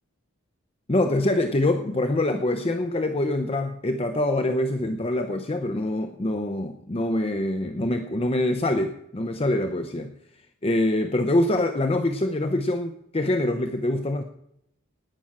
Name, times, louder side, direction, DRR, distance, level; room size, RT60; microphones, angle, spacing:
voice 1, 0.9-10.1 10.6-14.2, left 1 dB, 25° left, 7 dB, 0.7 m, -25 dB
17.5 x 6.2 x 8.7 m, 0.78 s
head